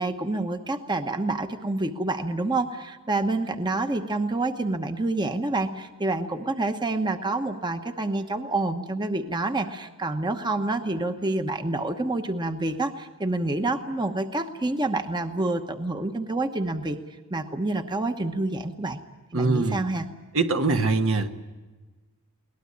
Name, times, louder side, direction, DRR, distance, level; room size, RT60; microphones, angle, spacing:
voice 1, 0.0-17.0 17.3-19.0 19.3-20.1, right 2 dB, 20° right, 7 dB, 1.1 m, -28 dB
voice 2, 19.3-19.8 20.3-21.3, right 3 dB, 65° right, 6 dB, 1.4 m, -23 dB
22.5 x 19.0 x 9.8 m, 1.2 s
head